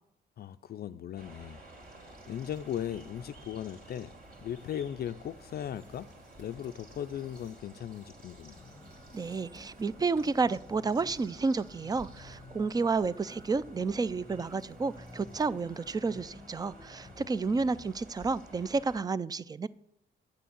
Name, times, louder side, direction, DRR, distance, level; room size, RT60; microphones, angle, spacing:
voice 1, 0.4-1.6 2.3-4.1 4.4-6.1 6.4-8.6 17.2-17.8, left 10 dB, 50° left, 10 dB, 0.4 m, -38 dB
sound 1, 1.2-19.0, right 1 dB, 45° right, 2.8 m, -53 dB
sound 2, 1.7-16.1, right 1 dB, 75° right, 2.8 m, -61 dB
sound 3, 8.6-17.1, left 2 dB, 15° left, 1.2 m, -53 dB
voice 2, 9.1-19.7, right 4 dB, 20° right, 18 dB, 0.4 m, -31 dB
9.5 x 6.8 x 7.3 m, 0.80 s
cardioid pair, 90°, 20 cm